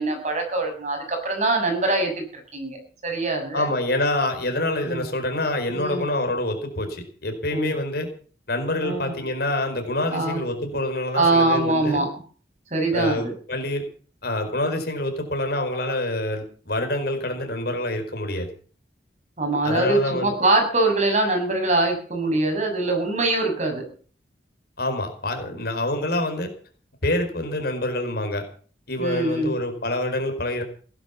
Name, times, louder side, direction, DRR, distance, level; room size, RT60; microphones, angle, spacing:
voice 1, 0.0-2.3 2.5-2.8 3.0-3.7 4.8-5.1 5.7-6.0 7.5-7.7 8.8-9.1 10.1-10.4 11.1-12.1 12.7-13.3 19.4-23.8 29.0-29.5, right 2 dB, 40° right, 4 dB, 6.7 m, -23 dB
voice 2, 3.5-8.1 8.5-12.0 12.9-13.8 14.2-18.5 19.6-20.3 24.8-26.5 27.0-28.4 28.9-30.6, left 1 dB, 60° left, 6 dB, 4.7 m, -26 dB
17.5 x 11.0 x 7.1 m, 0.43 s
head